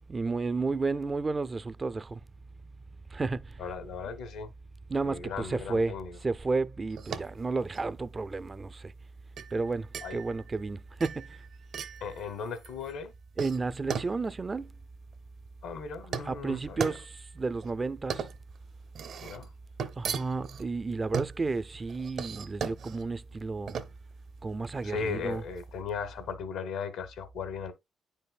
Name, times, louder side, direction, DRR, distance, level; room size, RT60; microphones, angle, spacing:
voice 1, 0.1-2.2 3.1-3.6 4.9-8.9 9.5-11.3 13.4-14.7 16.2-18.3 20.0-23.8 24.4-25.4, right 3 dB, 30° right, 0.4 m, -32 dB
voice 2, 3.6-4.5 5.0-6.2 10.0-10.2 12.0-13.1 15.6-16.9 19.2-19.5 24.8-27.7, left 5 dB, 85° left, 1.1 m, -37 dB
sound 1, 6.9-25.7, right 7 dB, 70° right, 0.8 m, -39 dB
9.3 x 5.4 x 2.3 m
cardioid pair, 90°, 0 cm